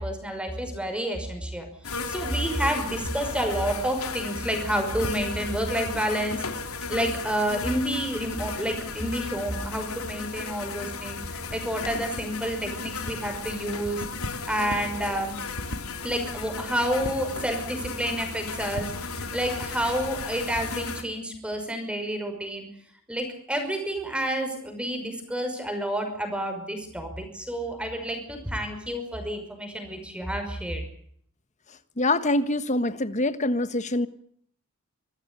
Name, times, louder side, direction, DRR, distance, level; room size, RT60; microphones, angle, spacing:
voice 1, 0.0-1.7 2.1-6.4 6.9-14.1 14.5-15.4 16.0-22.7 23.1-30.8, right 1 dB, 5° right, 5 dB, 5.6 m, -29 dB
sound 1, 1.8-21.0, left 4 dB, 75° left, 3.1 m, -35 dB
voice 2, 32.0-34.1, left 2 dB, 35° left, 13 dB, 1.4 m, -25 dB
25.5 x 14.5 x 9.8 m, 0.64 s
head